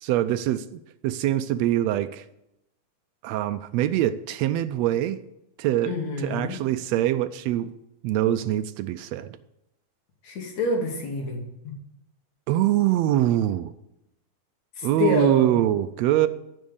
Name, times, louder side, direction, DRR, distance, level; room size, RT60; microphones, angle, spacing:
voice 1, 0.0-2.2 3.2-5.2 5.6-7.7 8.0-9.3 12.5-13.7 14.8-16.3, right 13 dB, 80° right, 12 dB, 1.6 m, -24 dB
voice 2, 5.9-6.6 10.2-11.4 14.8-15.6, left 2 dB, 65° left, 1 dB, 3.5 m, -27 dB
14.5 x 6.3 x 7.1 m, 0.84 s
omnidirectional pair, 3.4 m